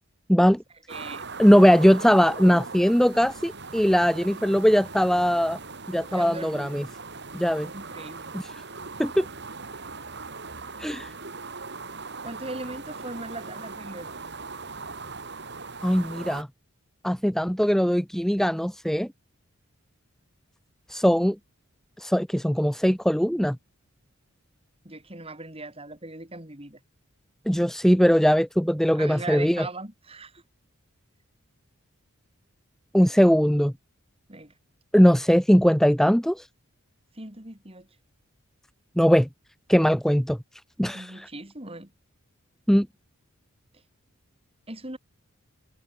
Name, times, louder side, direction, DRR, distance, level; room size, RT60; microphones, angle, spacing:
voice 1, 0.3-0.6 1.4-5.6 5.9-6.8 7.3-7.7 8.3-8.5 9.0-9.3 10.8-11.1 15.8-16.5 17.0-19.1 20.9-21.4 22.0-23.6 27.5-29.7 32.9-33.7 34.9-36.5 39.0-39.3 39.7-40.4 40.8-41.3 42.7-42.9, equal, ahead, 0.9 m, -20 dB
voice 2, 0.9-1.3 6.1-6.8 7.7-8.3 12.2-14.1 24.8-26.8 29.0-30.4 34.3-34.5 37.1-37.9 40.9-41.9 44.7-45.0, right 2 dB, 25° right, 4.3 m, -39 dB
sound 1, 0.9-16.4, right 4 dB, 55° right, 3.3 m, -39 dB
head